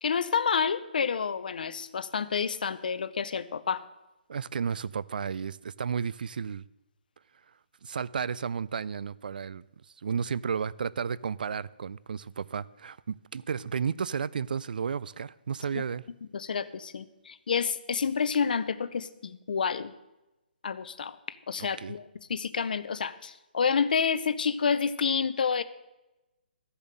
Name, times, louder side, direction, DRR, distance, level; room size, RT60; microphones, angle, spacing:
voice 1, 0.0-3.8 15.8-15.9 16.3-19.9 20.6-22.0 22.3-25.6, left 6 dB, 60° left, 0.7 m, -29 dB
voice 2, 4.3-6.6 7.8-9.6 10.0-16.0 21.8-21.9, right 6 dB, 60° right, 0.4 m, -33 dB
13.5 x 7.1 x 6.7 m
hypercardioid pair, 170°, 5 cm